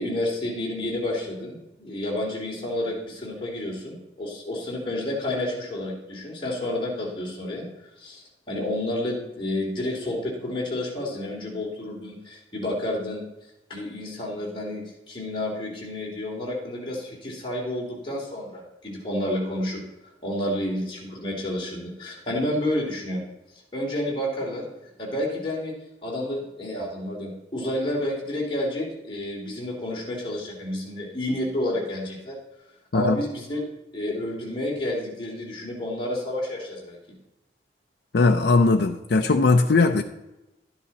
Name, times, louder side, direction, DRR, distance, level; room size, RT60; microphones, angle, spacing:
voice 1, 0.0-7.7 8.0-13.2 13.7-19.8 20.2-23.2 23.7-25.7 26.0-32.4 32.9-33.6 33.9-37.0, left 1 dB, 30° left, -4 dB, 3.0 m, -30 dB
voice 2, 38.1-40.0, left 3 dB, 70° left, 5 dB, 0.5 m, -19 dB
12.0 x 10.0 x 4.2 m, 0.96 s
head